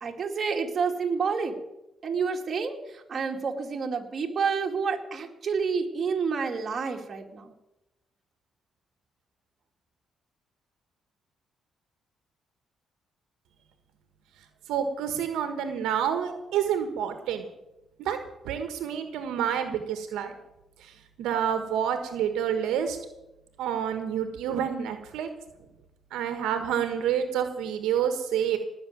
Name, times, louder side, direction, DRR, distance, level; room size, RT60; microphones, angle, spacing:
voice 1, 0.0-1.6 2.0-7.5, right 5 dB, 45° right, 2 dB, 2.5 m, -29 dB
voice 2, 14.7-17.5 18.0-18.2 18.4-20.3 20.8-23.0 23.6-25.3 26.1-28.6, right 9 dB, 90° right, 8 dB, 1.4 m, -28 dB
19.0 x 6.5 x 9.3 m, 0.96 s
cardioid pair, 90°, 0 cm